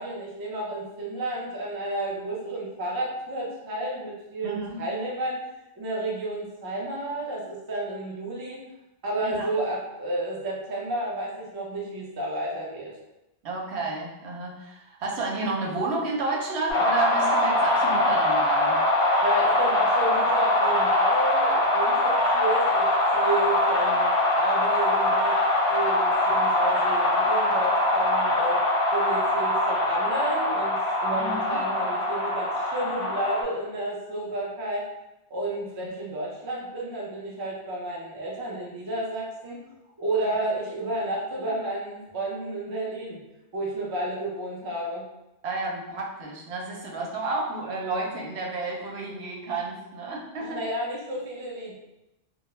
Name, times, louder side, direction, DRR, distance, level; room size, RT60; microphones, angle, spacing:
voice 1, 0.0-5.4 5.8-8.6 9.0-12.9 19.2-25.4 25.7-28.6 28.9-34.8 35.3-39.6 40.0-43.2 43.5-45.1 50.4-51.8, right 1 dB, 35° right, -3 dB, 0.3 m, -31 dB
voice 2, 4.4-4.8 9.2-9.5 13.4-18.8 31.1-31.6 40.2-40.5 45.4-50.6, right 3 dB, 80° right, -1 dB, 0.9 m, -31 dB
sound 1, 16.7-33.4, left 1 dB, 60° left, 0.7 m, -23 dB
2.2 x 2.1 x 3.0 m, 0.94 s
omnidirectional pair, 1.1 m